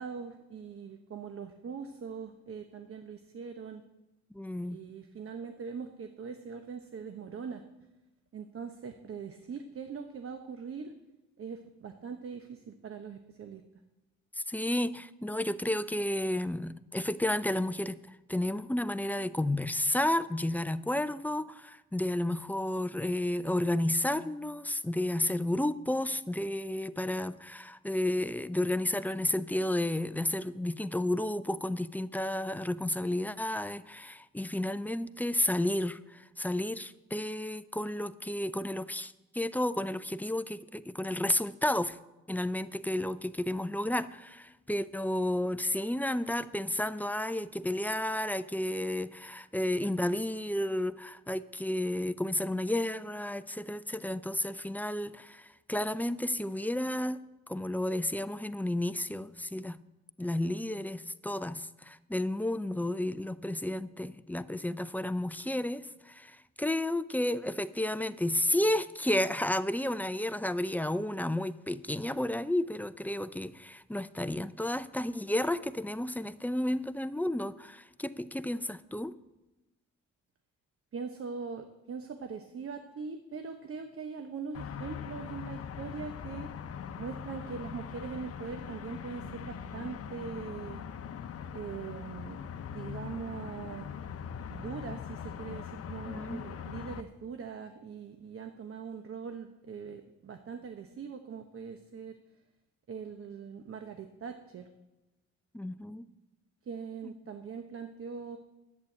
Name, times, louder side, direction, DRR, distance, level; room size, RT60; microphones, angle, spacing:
voice 1, 0.0-3.8 4.6-7.6 8.3-10.9 11.4-13.6 80.9-86.5 87.0-90.8 91.5-92.4 92.7-93.9 94.5-102.2 102.9-104.7 106.6-108.4, right 6 dB, 45° right, 1.0 m, -41 dB
voice 2, 4.3-4.8 14.4-42.0 42.3-59.8 60.2-79.2 96.1-96.4 105.5-106.1 107.0-107.2, left 1 dB, 5° left, 0.5 m, -32 dB
sound 1, 84.5-97.0, left 7 dB, 50° left, 0.9 m, -41 dB
10.5 x 8.5 x 8.6 m
cardioid pair, 90°, 30 cm